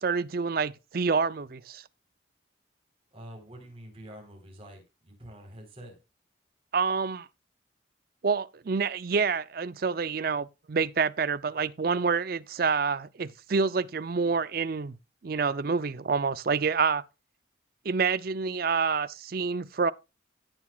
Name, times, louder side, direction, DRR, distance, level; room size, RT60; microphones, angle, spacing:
voice 1, 0.0-1.8 6.7-7.3 8.2-15.0 15.2-17.0 17.8-19.9, right 5 dB, 50° right, 0.5 m, -27 dB
voice 2, 3.1-6.0, right 1 dB, 30° right, 3.9 m, -47 dB
16.5 x 6.0 x 2.4 m
head